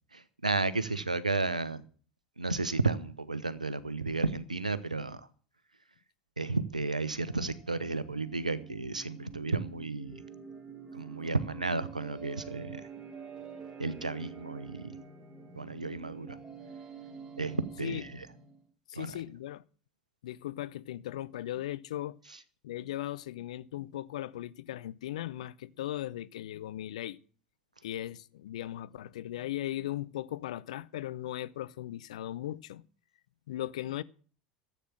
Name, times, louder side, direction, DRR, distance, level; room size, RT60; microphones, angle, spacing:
voice 1, 0.1-1.8 2.4-5.3 6.4-10.2 10.9-12.8 13.8-14.9 15.5-16.4 17.4-18.3 18.9-19.1, right 3 dB, 90° right, 0.8 m, -33 dB
sound 1, 7.3-18.6, right 6 dB, 20° right, 2.3 m, -47 dB
voice 2, 18.9-19.6 20.2-22.2 22.6-27.2 27.8-32.8 33.5-34.0, left 13 dB, 65° left, 0.6 m, -38 dB
13.5 x 8.3 x 7.3 m
figure-of-eight pair, 75°, 4 cm